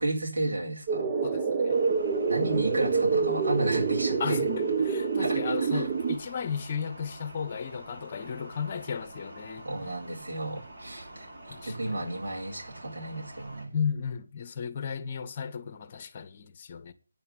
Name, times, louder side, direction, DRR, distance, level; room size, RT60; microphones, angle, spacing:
voice 1, 0.0-1.1 2.3-4.4 5.2-5.9 9.6-13.7, right 2 dB, 65° right, 4.3 m, -33 dB
sound 1, 0.9-6.2, right 5 dB, 30° right, 1.1 m, -27 dB
voice 2, 1.2-1.8 4.2-10.0 11.5-12.1 13.7-16.9, left 6 dB, 35° left, 1.2 m, -35 dB
sound 2, 1.7-13.7, right 1 dB, 45° right, 6.8 m, -47 dB
9.7 x 5.6 x 8.1 m
figure-of-eight pair, 155°, 0 cm